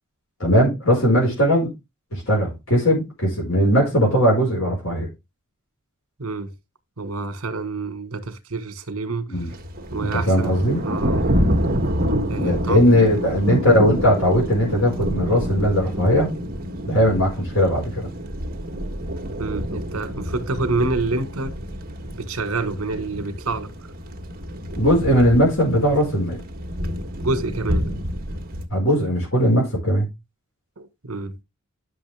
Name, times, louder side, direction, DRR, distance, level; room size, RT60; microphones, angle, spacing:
voice 1, 0.4-1.7 2.1-5.1 9.3-9.5 10.0-10.8 12.3-16.3 16.9-18.1 24.8-26.4 28.7-30.1, equal, 65° left, 4.8 m, -19 dB
voice 2, 6.2-6.5 7.0-9.5 9.9-10.6 10.8-11.3 12.3-12.8 19.4-21.5 22.1-23.7 27.2-27.9 30.8-31.4, right 3 dB, 70° right, 1.6 m, -27 dB
Thunder, 9.4-28.6, equal, 40° right, 1.5 m, -28 dB
9.9 x 6.5 x 3.5 m
head